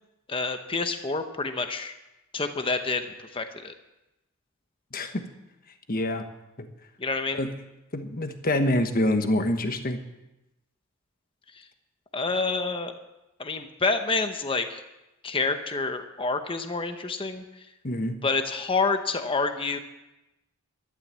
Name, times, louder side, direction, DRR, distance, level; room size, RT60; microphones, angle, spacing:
voice 1, 0.3-1.9 2.3-3.7 7.0-7.4 12.1-12.9 13.4-14.8 15.2-17.4 18.2-19.8, left 3 dB, 25° left, 7 dB, 0.9 m, -28 dB
voice 2, 4.9-5.2 5.9-6.2 6.6-6.7 7.3-7.5 7.9-10.0 17.8-18.2, left 1 dB, 40° left, 7 dB, 1.2 m, -26 dB
12.5 x 11.5 x 7.5 m, 0.96 s
head